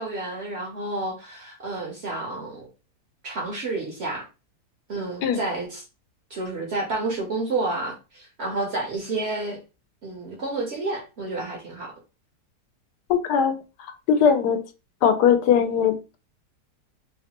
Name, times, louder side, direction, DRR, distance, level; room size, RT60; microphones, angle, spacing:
voice 1, 0.0-2.7 3.2-4.3 4.9-5.8 6.3-9.6 10.0-11.9, right 2 dB, 60° right, 0.7 m, -30 dB
voice 2, 13.1-13.6 14.1-14.6 15.0-16.2, left 7 dB, 90° left, 1.2 m, -20 dB
3.1 x 2.1 x 2.8 m
omnidirectional pair, 1.7 m